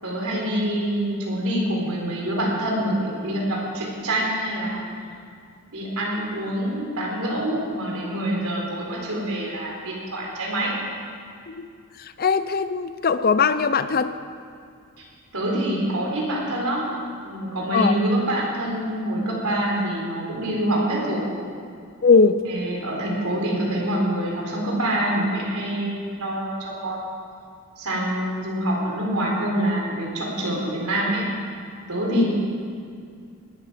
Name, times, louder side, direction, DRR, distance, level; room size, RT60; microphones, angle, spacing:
voice 1, 0.0-4.8 5.7-10.8 15.3-17.0 17.2-21.3 22.4-27.2 27.8-31.2 31.9-32.3, right 1 dB, 80° right, -2 dB, 4.1 m, -26 dB
voice 2, 12.0-14.1 17.7-17.9 22.0-22.4 32.1-32.2, left 5 dB, 45° left, 12 dB, 0.6 m, -20 dB
19.0 x 12.5 x 5.1 m, 2.3 s
head